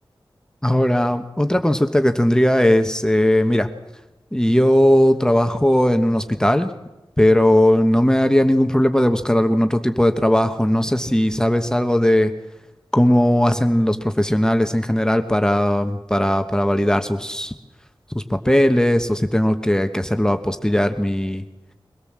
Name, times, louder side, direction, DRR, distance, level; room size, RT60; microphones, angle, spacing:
voice 1, 0.6-3.7 4.3-6.7 7.2-12.3 12.9-17.5 18.1-21.4, left 1 dB, 10° left, 7 dB, 1.1 m, -18 dB
23.5 x 17.5 x 7.4 m, 1.0 s
wide cardioid pair, 80°, 9 cm